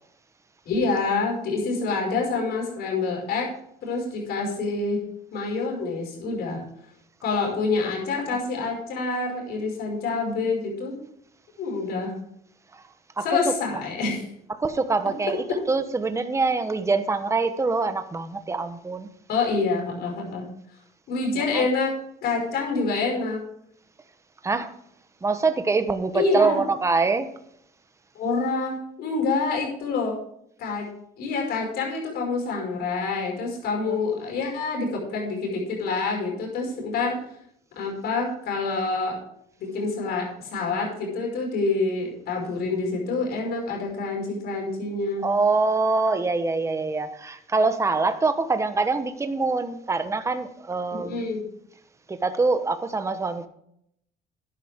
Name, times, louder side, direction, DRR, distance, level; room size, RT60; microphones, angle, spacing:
voice 1, 0.7-3.5 3.8-5.0 5.3-6.6 7.2-11.0 11.6-12.1 13.2-14.2 15.5-15.6 19.3-20.4 21.1-21.9 22.2-23.4 26.1-26.6 28.1-28.7 29.0-30.2 30.6-30.9 31.2-37.2 37.8-39.2 39.7-45.2 50.9-51.4, left 3 dB, 70° left, 0 dB, 5.6 m, -27 dB
voice 2, 13.2-13.5 14.5-19.1 21.5-21.7 24.4-24.7 25.2-27.3 33.9-34.0 45.2-51.2 52.1-53.5, right 3 dB, 15° right, 9 dB, 1.0 m, -24 dB
12.5 x 10.5 x 3.6 m, 0.72 s
cardioid pair, 110°, 17 cm